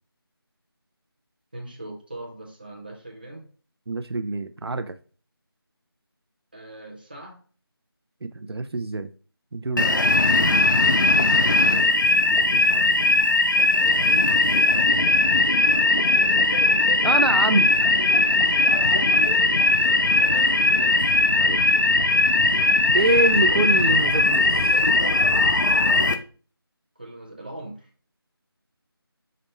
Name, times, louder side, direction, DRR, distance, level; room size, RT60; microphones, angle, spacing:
voice 1, 1.5-3.5 6.5-7.4 11.0-11.9 13.8-16.4 18.4-21.0 27.0-27.9, right 1 dB, 20° right, 0 dB, 0.8 m, -41 dB
voice 2, 3.9-5.0 8.2-9.1 9.5-9.9 12.5-13.0 17.0-17.7 21.3-21.6 22.9-24.8, right 2 dB, 80° right, 9 dB, 0.5 m, -25 dB
sound 1, 9.8-26.2, left 2 dB, 50° left, 0.5 m, -19 dB
5.1 x 2.1 x 4.1 m, 0.40 s
figure-of-eight pair, 175°, 13 cm